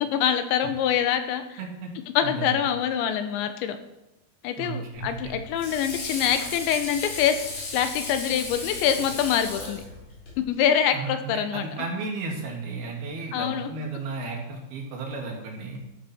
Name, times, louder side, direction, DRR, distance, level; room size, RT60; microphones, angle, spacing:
voice 1, 0.1-1.6 2.1-3.8 4.4-7.4 7.7-9.8 10.5-11.7 13.3-13.7, left 9 dB, 85° left, 9 dB, 3.3 m, -25 dB
voice 2, 1.6-1.9 2.2-2.6 4.6-5.3 10.9-15.8, right 3 dB, 60° right, 0 dB, 4.1 m, -34 dB
Water / Sink (filling or washing), 4.9-10.4, left 3 dB, 60° left, 6.1 m, -36 dB
14.0 x 11.5 x 4.5 m, 0.93 s
omnidirectional pair, 5.2 m